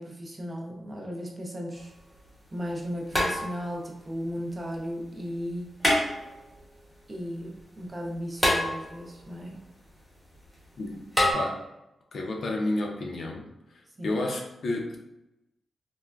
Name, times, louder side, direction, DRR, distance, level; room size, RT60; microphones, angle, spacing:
voice 1, 0.0-1.9 2.5-5.7 7.1-9.6 14.0-14.2, equal, 20° right, 0 dB, 0.5 m, -36 dB
sound 1, 1.8-1.9 3.1-3.8 5.8-6.6 8.4-9.2 11.2-11.3, left 1 dB, 5° left, 0.9 m, -26 dB
voice 2, 12.1-13.5 13.7-15.0, left 2 dB, 60° left, 1 dB, 0.5 m, -31 dB
3.2 x 2.1 x 2.3 m, 0.91 s
wide cardioid pair, 145°, 0 cm